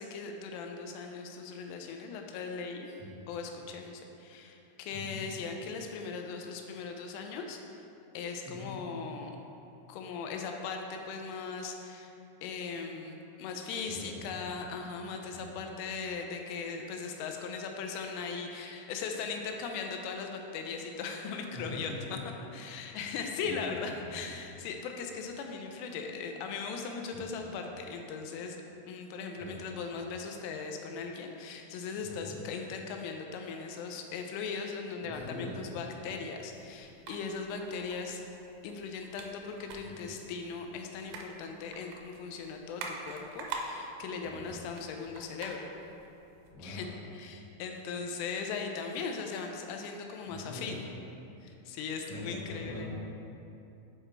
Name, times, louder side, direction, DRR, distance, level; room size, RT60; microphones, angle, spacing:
voice 1, 0.0-2.9 3.3-7.6 8.1-9.4 9.9-12.1 12.4-21.9 22.5-28.6 28.9-38.2 38.6-45.6 46.6-46.9 47.1-50.8 51.4-52.9, left 5 dB, 85° left, 3 dB, 3.1 m, -39 dB
voice 2, 4.9-5.3 8.4-8.8 13.8-14.4 15.3-15.5 21.5-22.1 23.5-23.9 27.1-27.3 29.4-29.6 32.0-32.4 35.0-35.7 39.8-40.1 44.2-44.5 46.5-46.9 50.2-50.9 52.1-52.9, left 1 dB, 60° left, -9 dB, 2.3 m, -43 dB
sound 1, 36.5-46.5, right 3 dB, 90° right, 3.1 m, -46 dB
8.5 x 4.8 x 3.3 m, 2.8 s
omnidirectional pair, 5.6 m